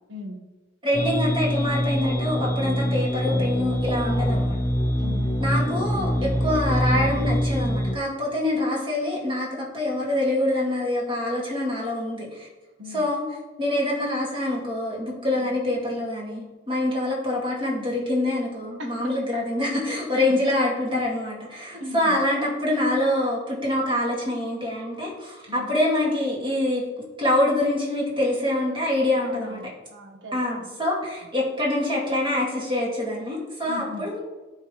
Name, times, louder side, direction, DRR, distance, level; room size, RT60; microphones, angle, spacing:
voice 1, 0.8-4.6 5.4-12.5 12.9-13.2 13.6-26.8 27.2-29.6 30.3-34.2, left 1 dB, 25° right, -4 dB, 2.2 m, -25 dB
sound 1, 0.9-7.9, equal, 15° left, 0.7 m, -24 dB
voice 2, 4.0-4.4 5.0-5.4 12.8-13.0 15.3-15.5 18.8-19.1 20.1-20.5 21.8-22.2 25.5-25.7 29.2-30.6 33.6-34.1, left 1 dB, 70° right, 1 dB, 1.6 m, -38 dB
13.0 x 4.6 x 3.3 m, 1.2 s
head